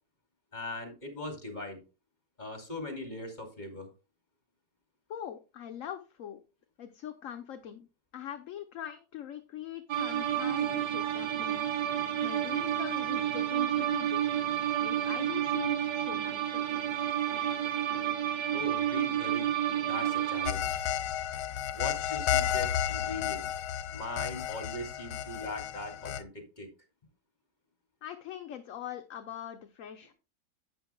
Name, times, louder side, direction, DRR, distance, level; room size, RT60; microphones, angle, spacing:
voice 1, 0.5-1.8 2.4-3.9 18.5-19.6 19.9-20.8 21.7-23.5 23.9-26.7, left 2 dB, 30° left, 3 dB, 2.6 m, -40 dB
voice 2, 5.1-6.4 6.8-11.7 12.2-14.2 14.8-16.9 28.0-30.1, left 10 dB, 60° left, 7 dB, 1.1 m, -42 dB
sound 1, 9.9-20.5, right 10 dB, 85° right, 1.5 m, -30 dB
sound 2, 10.2-20.2, right 4 dB, 45° right, 2.4 m, -50 dB
sound 3, 20.5-26.2, left 10 dB, 85° left, 1.2 m, -32 dB
11.5 x 8.8 x 2.3 m, 0.31 s
omnidirectional pair, 1.7 m